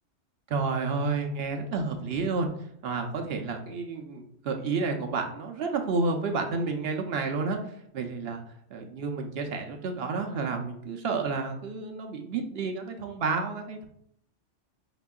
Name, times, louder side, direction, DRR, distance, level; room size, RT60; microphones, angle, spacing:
voice 1, 0.5-2.5 2.8-7.6 7.9-8.4 8.7-13.9, right 4 dB, 65° right, 4 dB, 0.7 m, -30 dB
4.9 x 3.5 x 2.3 m, 0.69 s
omnidirectional pair, 1.2 m